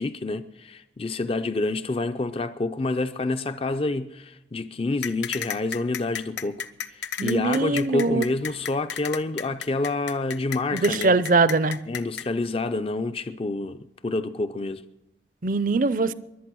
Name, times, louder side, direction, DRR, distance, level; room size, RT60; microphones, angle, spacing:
voice 1, 0.0-11.2 11.9-14.8, left 2 dB, 30° left, 0.5 m, -28 dB
sound 1, 5.0-12.3, left 8 dB, 80° left, 0.9 m, -32 dB
voice 2, 7.2-8.2 10.7-11.8 15.4-16.1, right 3 dB, 50° right, 0.6 m, -22 dB
22.5 x 8.7 x 6.2 m
head